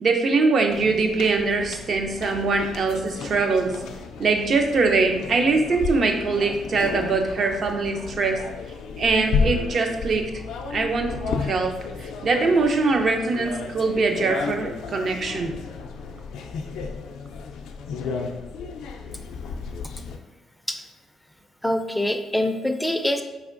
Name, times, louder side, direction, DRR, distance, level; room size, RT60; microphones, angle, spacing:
voice 1, 0.0-3.8 4.2-8.4 9.0-10.3 10.7-15.6, right 3 dB, 55° right, 4 dB, 0.5 m, -22 dB
sound 1, 0.7-20.2, left 5 dB, 85° left, 0.4 m, -33 dB
voice 2, 21.6-23.2, left 1 dB, 5° left, 6 dB, 0.4 m, -24 dB
4.5 x 3.4 x 2.5 m, 1.1 s
cardioid pair, 90°, 0 cm